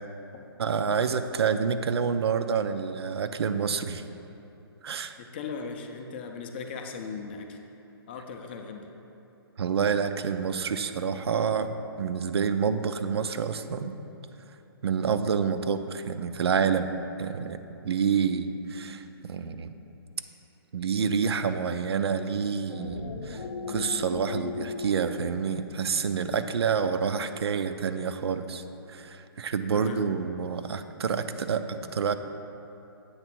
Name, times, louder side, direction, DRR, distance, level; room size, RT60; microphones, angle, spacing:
voice 1, 0.6-4.0 4.8-5.2 9.6-14.0 14.8-19.7 20.7-28.6 28.9-32.1, right 6 dB, 85° right, 9 dB, 0.5 m, -28 dB
voice 2, 5.2-7.6 8.1-8.9 29.7-30.1, left 5 dB, 25° left, 4 dB, 0.4 m, -38 dB
sound 1, 22.5-27.1, left 4 dB, 70° left, 0.6 m, -38 dB
8.0 x 3.6 x 5.9 m, 2.9 s
hypercardioid pair, 165°, 13 cm